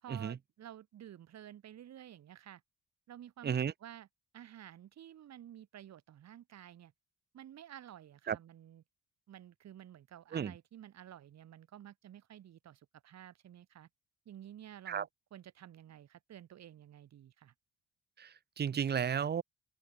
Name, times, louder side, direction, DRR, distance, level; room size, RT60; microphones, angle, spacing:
voice 1, 0.0-2.6 3.1-4.1 4.3-6.9 7.3-8.8 9.3-13.9 14.2-17.5, right 11 dB, 60° right, 1.6 m, -52 dB
voice 2, 18.2-19.4, right 8 dB, 35° right, 0.8 m, -33 dB
open air
cardioid pair, 90°, 30 cm